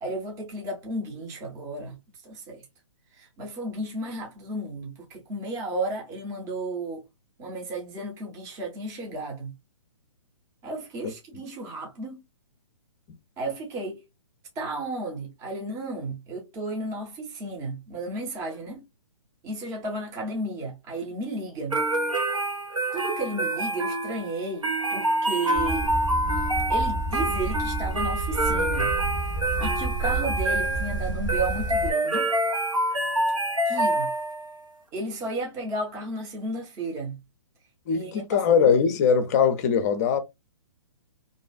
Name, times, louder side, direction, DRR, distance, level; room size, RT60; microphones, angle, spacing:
voice 1, 0.0-2.0 2.2-2.6 3.2-7.0 7.4-9.6 10.6-12.2 13.4-14.0 14.6-18.8 19.4-21.8 22.9-25.9 26.7-29.0 29.6-32.3 33.7-34.2 34.9-37.2 37.9-38.5, right 2 dB, 20° right, 0.7 m, -33 dB
sound 1, 21.7-34.5, right 1 dB, 90° right, 1.1 m, -27 dB
sound 2, 25.5-31.9, right 2 dB, 35° right, 1.0 m, -30 dB
voice 2, 37.9-40.2, left 6 dB, 35° left, 0.5 m, -21 dB
2.6 x 2.3 x 2.2 m
figure-of-eight pair, 130°, 16 cm